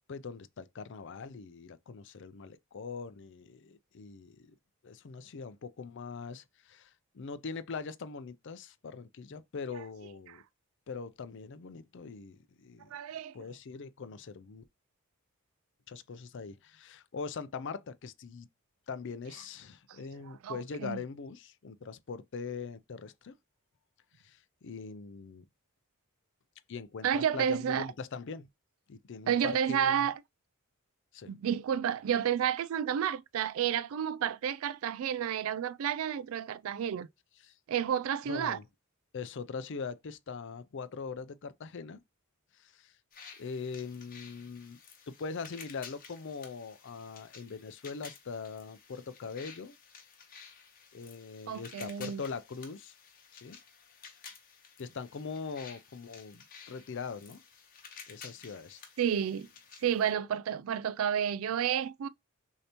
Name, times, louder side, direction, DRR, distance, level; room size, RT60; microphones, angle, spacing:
voice 1, 0.1-4.6 4.8-10.4 10.9-12.9 13.3-14.6 15.9-18.5 18.9-23.4 24.2-25.4 26.7-28.5 28.9-30.1 31.1-31.3 37.4-37.6 38.3-38.6 39.1-42.0 42.5-43.0 43.4-44.8 45.1-49.8 50.9-52.9 53.3-53.6 54.8-57.4 58.1-58.8, left 5 dB, 60° left, 0.5 m, -42 dB
voice 2, 12.9-13.5 19.9-20.0 20.4-21.0 27.0-27.9 29.3-30.2 31.3-37.1 37.7-38.6 51.5-52.2 59.0-59.5 59.8-62.1, right 8 dB, 70° right, 0.3 m, -31 dB
sound 1, 43.1-60.1, left 6 dB, 40° left, 1.0 m, -53 dB
6.5 x 2.8 x 2.9 m
head